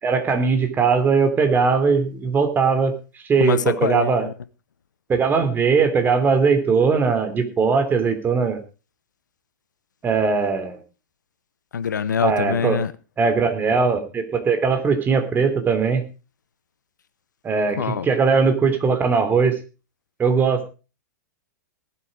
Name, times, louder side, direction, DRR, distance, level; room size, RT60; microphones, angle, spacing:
voice 1, 0.0-2.9 3.3-4.3 5.1-8.6 10.0-10.8 12.2-12.8 13.2-16.0 17.4-19.6 20.2-20.7, right 5 dB, 20° right, 3.3 m, -20 dB
voice 2, 3.4-4.3 11.7-12.9 17.8-18.1, left 7 dB, 75° left, 1.1 m, -24 dB
18.5 x 8.3 x 5.0 m
hypercardioid pair, 105°, 10 cm